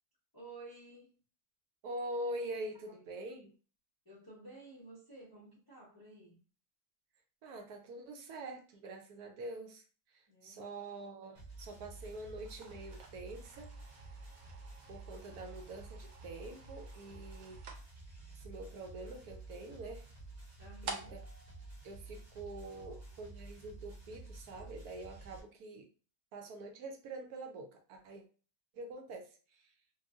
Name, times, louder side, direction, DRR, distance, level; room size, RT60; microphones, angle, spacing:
voice 1, 0.3-1.2 2.9-3.0 4.0-6.4 10.3-10.7 20.6-21.2 22.6-23.3, right 2 dB, 25° left, 0.5 m, -54 dB
voice 2, 1.8-3.5 7.4-13.7 14.9-17.6 18.4-20.1 20.8-21.2 21.8-25.9 26.3-28.2 28.7-29.7, right 1 dB, 70° right, 1.0 m, -45 dB
sound 1, 11.3-25.4, right 2 dB, 30° right, 0.9 m, -51 dB
sound 2, 12.4-22.8, right 4 dB, 90° right, 1.3 m, -52 dB
3.0 x 2.6 x 2.4 m
omnidirectional pair, 1.8 m